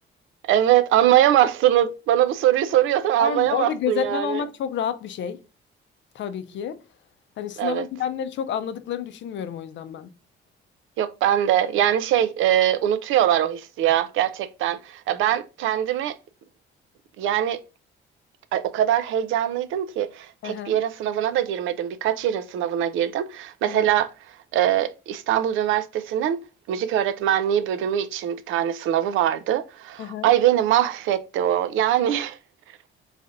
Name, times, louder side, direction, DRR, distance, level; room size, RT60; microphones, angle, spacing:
voice 1, 0.5-4.4 7.6-7.9 11.0-16.2 17.2-17.6 18.5-24.1 24.5-26.4 26.7-32.4, right 11 dB, 85° right, 0.4 m, -22 dB
voice 2, 3.2-5.4 6.1-6.8 7.4-10.1 20.4-20.8 23.7-23.8 30.0-30.3, left 8 dB, 70° left, 0.5 m, -29 dB
3.2 x 2.5 x 3.9 m
cardioid pair, 90°, 20 cm